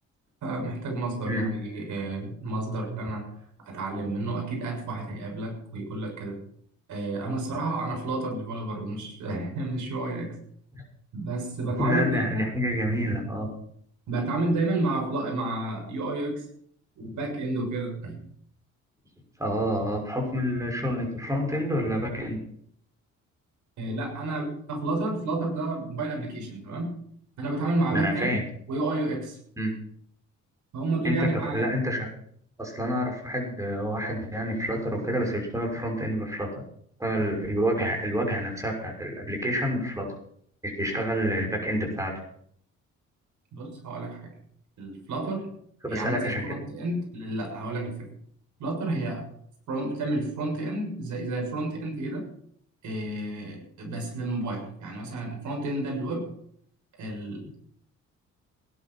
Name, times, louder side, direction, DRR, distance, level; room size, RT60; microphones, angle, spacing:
voice 1, 0.4-3.3 3.6-6.4 6.9-10.4 11.1-12.5 14.1-16.3 17.0-18.2 23.8-26.9 27.4-28.4 28.7-29.4 30.7-31.7 43.5-44.3 44.8-45.5 45.9-48.1 48.6-49.2 49.7-52.2 52.8-56.3 57.0-57.6, right 2 dB, 75° right, 2 dB, 7.0 m, -30 dB
voice 2, 11.8-13.5 19.4-22.4 27.9-28.4 29.6-29.7 31.0-32.1 32.6-36.6 37.0-40.1 40.6-42.1 45.8-46.5, equal, 10° right, 1 dB, 6.3 m, -28 dB
18.0 x 11.5 x 5.7 m, 0.65 s
cardioid pair, 90°, 30 cm